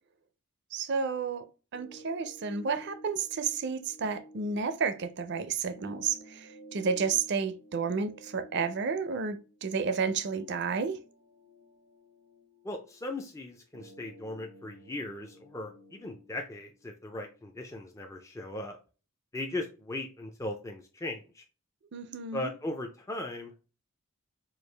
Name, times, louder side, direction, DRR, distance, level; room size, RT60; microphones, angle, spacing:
voice 1, 0.7-1.4 1.7-11.0 21.9-22.5, right 5 dB, 50° right, 0.4 m, -31 dB
sound 1, 1.7-17.7, equal, 65° left, 0.9 m, -54 dB
voice 2, 12.6-18.8 19.3-21.4 22.3-23.6, left 1 dB, 15° left, 0.3 m, -38 dB
4.6 x 2.4 x 3.2 m
head